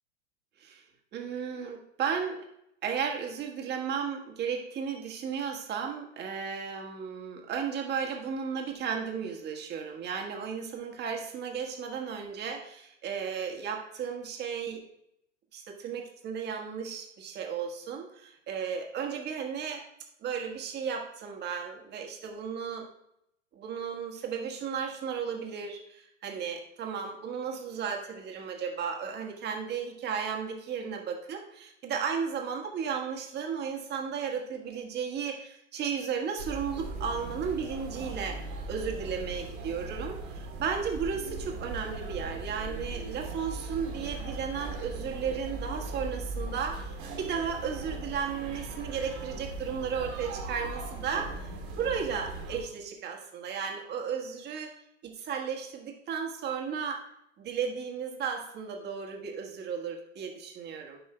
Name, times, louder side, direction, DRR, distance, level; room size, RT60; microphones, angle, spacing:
voice 1, 1.1-2.4 2.8-14.8 15.5-19.8 20.2-22.9 23.5-51.3 51.8-54.7 55.0-57.0 57.4-61.0, right 6 dB, 30° right, 2 dB, 1.5 m, -34 dB
sound 1, 36.4-52.6, right 2 dB, 45° right, 1.9 m, -39 dB
13.0 x 5.4 x 2.2 m, 0.78 s
hypercardioid pair, 105°, 36 cm